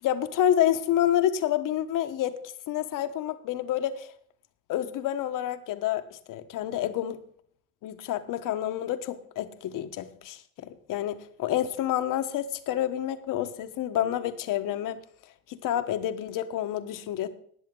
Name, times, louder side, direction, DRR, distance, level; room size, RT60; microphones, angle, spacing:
voice 1, 0.0-4.1 4.7-7.2 7.8-15.0 15.5-17.3, left 11 dB, 50° left, 10 dB, 1.2 m, -28 dB
19.0 x 7.5 x 3.8 m, 0.62 s
supercardioid pair, 110°, 41 cm